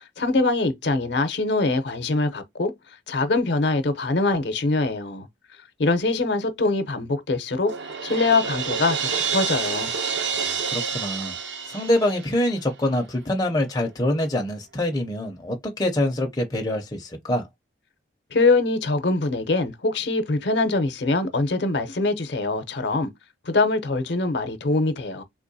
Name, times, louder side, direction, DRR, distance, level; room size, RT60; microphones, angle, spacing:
voice 1, 0.2-2.7 3.1-5.3 5.8-7.7 8.0-9.9 18.3-23.1 23.5-25.2, left 3 dB, 65° left, 0.6 m, -23 dB
Crash cymbal, 7.7-12.6, right 6 dB, 65° right, 0.5 m, -28 dB
voice 2, 10.4-11.3 11.7-17.5, left 1 dB, 20° left, 0.5 m, -25 dB
3.6 x 2.9 x 2.6 m
head